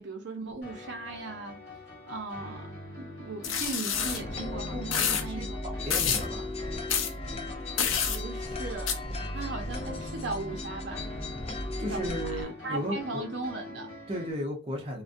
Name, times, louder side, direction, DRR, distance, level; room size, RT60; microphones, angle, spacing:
voice 1, 0.0-1.6 2.1-2.7 3.0-5.6 8.0-11.0 11.8-13.9, right 3 dB, 65° right, 0.6 m, -38 dB
sound 1, 0.6-14.3, left 2 dB, 45° left, 1.4 m, -44 dB
sound 2, 3.4-4.2 4.9-5.2 5.9-6.2 6.9-7.1 7.8-8.2 8.9-9.0, left 7 dB, 90° left, 0.5 m, -27 dB
sound 3, 3.9-12.4, left 1 dB, 30° left, 0.5 m, -36 dB
voice 2, 4.7-6.5 11.8-13.2 14.1-15.0, equal, 30° right, 0.6 m, -35 dB
2.4 x 2.2 x 2.5 m
head